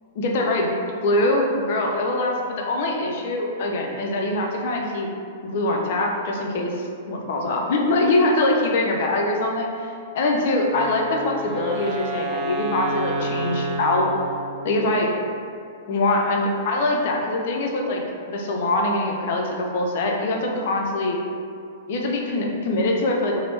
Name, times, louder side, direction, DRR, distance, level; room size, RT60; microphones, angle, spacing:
voice 1, 0.1-0.7 1.0-5.1 5.4-14.1 14.6-15.2 15.9-18.0 18.3-21.2 21.9-23.4, left 2 dB, 55° left, 0 dB, 0.4 m, -23 dB
Wind instrument woodwind instrument, 10.7-14.8, right 1 dB, 30° right, 0.3 m, -30 dB
2.9 x 2.0 x 3.0 m, 2.4 s
figure-of-eight pair, 105°, 0 cm